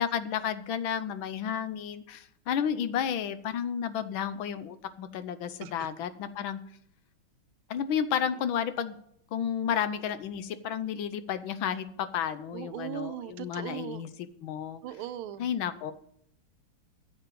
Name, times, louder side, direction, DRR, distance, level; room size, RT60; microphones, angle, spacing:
voice 1, 0.0-6.6 7.7-9.0 9.3-14.8 15.4-15.9, left 8 dB, 75° left, 12 dB, 1.5 m, -32 dB
voice 2, 12.5-14.0 14.8-15.5, right 11 dB, 85° right, 12 dB, 1.5 m, -38 dB
9.5 x 7.6 x 7.4 m, 0.71 s
omnidirectional pair, 2.3 m